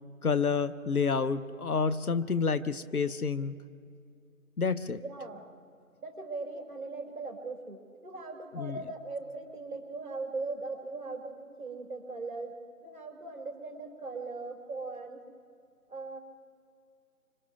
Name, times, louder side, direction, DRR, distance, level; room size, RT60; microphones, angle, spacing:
voice 1, 0.2-3.6 4.6-5.0 8.5-8.8, left 5 dB, 75° left, 14 dB, 0.9 m, -29 dB
voice 2, 5.0-5.4 6.0-15.2 15.9-16.2, right 3 dB, 30° right, 1 dB, 4.1 m, -39 dB
29.5 x 25.5 x 3.6 m, 2.4 s
figure-of-eight pair, 170°, 45 cm